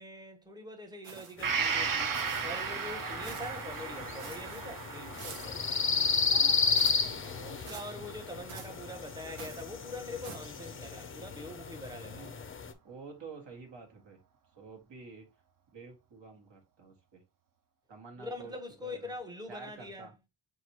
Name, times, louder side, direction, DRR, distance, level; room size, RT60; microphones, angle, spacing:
voice 1, 0.0-5.6 7.2-12.3 18.2-20.1, left 1 dB, 10° right, 0.7 m, -44 dB
sound 1, 1.0-1.6 2.1-2.7 3.2-3.6 4.2-4.6 5.2-5.6 6.8-7.1 7.7-8.0 8.5-8.8 9.4-9.7 10.2-10.6, right 6 dB, 90° right, 1.0 m, -48 dB
sound 2, 1.4-12.7, left 5 dB, 30° left, 0.4 m, -33 dB
Gong, 1.4-9.1 9.4-9.5, right 5 dB, 45° right, 0.5 m, -37 dB
voice 2, 6.3-7.3 7.9-8.1 12.0-12.3 12.8-14.2 14.6-15.3 15.7-17.2 17.9-18.5 18.8-19.1 19.5-20.1, right 4 dB, 60° right, 1.5 m, -49 dB
5.7 x 2.7 x 2.8 m
wide cardioid pair, 125°, 50 cm